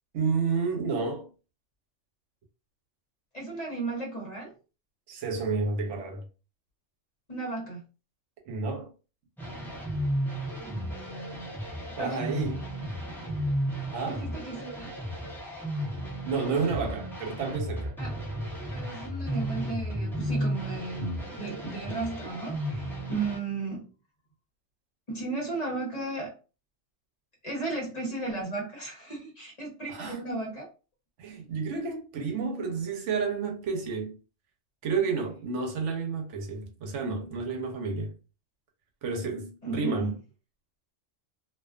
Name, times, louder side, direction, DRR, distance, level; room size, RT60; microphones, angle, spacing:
voice 1, 0.1-1.3 5.1-6.2 8.5-8.9 12.0-12.6 13.9-14.3 16.2-18.0 29.9-30.5 31.2-34.2 34.8-38.1 39.0-40.1, right 4 dB, 75° right, 1.0 m, -30 dB
voice 2, 3.3-4.5 7.3-7.8 10.6-11.4 12.0-12.4 14.1-14.9 18.0-18.2 18.7-23.9 25.1-26.3 27.4-30.6 39.6-40.1, right 3 dB, 35° left, 0.9 m, -35 dB
sound 1, 9.4-23.4, equal, 5° left, 0.3 m, -34 dB
2.3 x 2.3 x 2.3 m
omnidirectional pair, 1.3 m